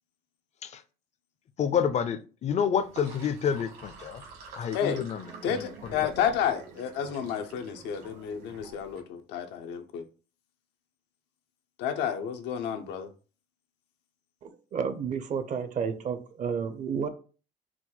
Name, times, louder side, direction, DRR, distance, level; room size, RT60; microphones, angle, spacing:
voice 1, 1.6-4.2 4.6-6.1, left 7 dB, 40° left, 0.5 m, -29 dB
Sink (filling or washing), 2.7-9.0, right 4 dB, 70° right, 1.7 m, -47 dB
voice 2, 4.7-5.0 5.4-10.0 11.8-13.1, left 8 dB, 85° left, 0.7 m, -31 dB
voice 3, 14.4-17.1, right 6 dB, 50° right, 0.7 m, -31 dB
4.5 x 2.2 x 4.0 m
cardioid pair, 110°, 17 cm